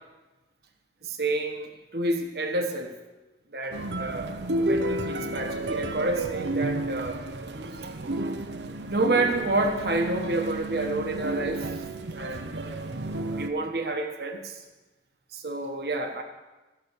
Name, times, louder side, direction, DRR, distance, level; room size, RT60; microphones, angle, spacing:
voice 1, 1.0-2.9 3.5-4.3 4.6-7.2 8.9-11.8 12.1-12.8 13.3-14.6 15.3-16.2, right 2 dB, 65° right, 4 dB, 1.2 m, -29 dB
sound 1, 3.7-13.5, right 1 dB, 85° right, 0.8 m, -31 dB
14.5 x 6.1 x 8.2 m, 1.1 s
head